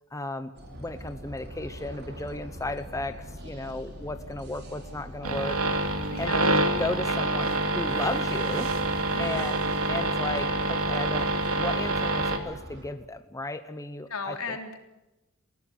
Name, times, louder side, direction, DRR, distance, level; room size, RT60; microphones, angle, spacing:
voice 1, 0.1-0.5 0.8-3.2 3.4-5.6 6.2-8.7 9.2-9.6 9.9-11.3 11.6-14.6, left 2 dB, 15° left, 10 dB, 0.9 m, -34 dB
sound 1, 0.5-12.9, equal, 50° right, 4.9 m, -43 dB
sound 2, 5.2-12.4, right 2 dB, 75° right, 2.9 m, -27 dB
voice 2, 6.1-6.8 9.1-9.7 14.1-14.8, left 4 dB, 75° left, 5 dB, 3.7 m, -37 dB
21.0 x 18.0 x 9.6 m, 0.97 s
head